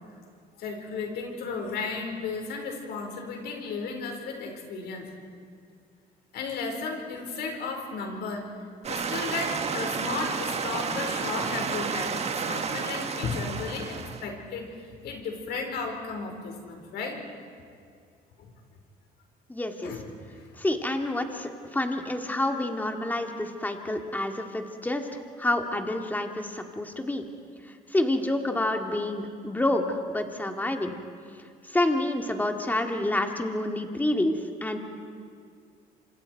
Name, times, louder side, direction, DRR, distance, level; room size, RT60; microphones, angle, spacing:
voice 1, 0.6-5.0 6.3-8.5 8.9-14.7 15.0-17.2 19.8-20.4, left 4 dB, 75° left, 2 dB, 5.0 m, -34 dB
sound 1, 8.8-14.3, right 5 dB, 40° right, 1.6 m, -31 dB
voice 2, 19.5-20.0 20.6-25.1 25.4-27.3 27.9-30.9 31.7-34.8, left 1 dB, 10° left, 4 dB, 2.1 m, -28 dB
28.0 x 26.5 x 4.7 m, 2.2 s
cardioid pair, 110°, 17 cm